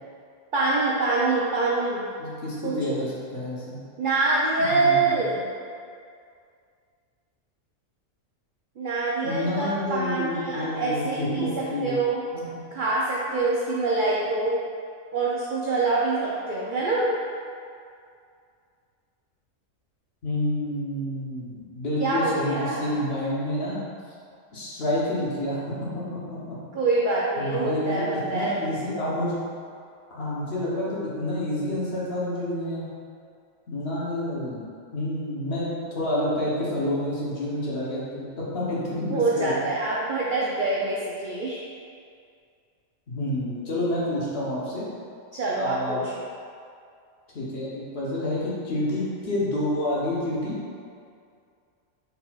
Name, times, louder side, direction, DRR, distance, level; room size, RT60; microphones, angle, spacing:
voice 1, 0.5-2.1 2.6-3.0 4.0-5.5 8.8-12.2 12.7-14.6 15.1-17.1 22.0-23.0 26.7-28.5 39.1-41.6 45.3-46.2, right 3 dB, 75° right, -5 dB, 0.4 m, -25 dB
voice 2, 2.2-3.8 4.6-5.2 9.2-12.0 12.3-12.6 20.2-23.8 24.5-25.6 25.9-26.6 27.4-29.4 30.1-32.9 33.7-34.6 34.9-39.6 43.1-44.8 45.5-46.0 47.3-50.5, left 1 dB, 50° left, -7 dB, 1.0 m, -29 dB
4.1 x 3.9 x 2.3 m, 2.3 s
omnidirectional pair, 1.4 m